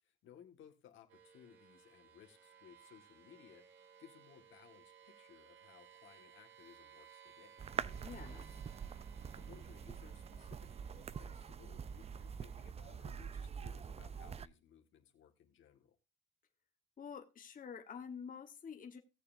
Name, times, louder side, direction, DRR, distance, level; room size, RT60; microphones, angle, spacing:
voice 1, 0.0-7.7 9.4-16.0, left 9 dB, 80° left, 5 dB, 1.8 m, -61 dB
sound 1, 1.1-12.7, right 8 dB, 80° right, 2.3 m, -62 dB
sound 2, 7.6-14.5, right 7 dB, 30° right, 0.4 m, -45 dB
voice 2, 7.8-8.5 17.0-19.0, left 6 dB, 45° left, 5 dB, 1.2 m, -48 dB
18.0 x 6.9 x 2.6 m, 0.29 s
cardioid pair, 90°, 20 cm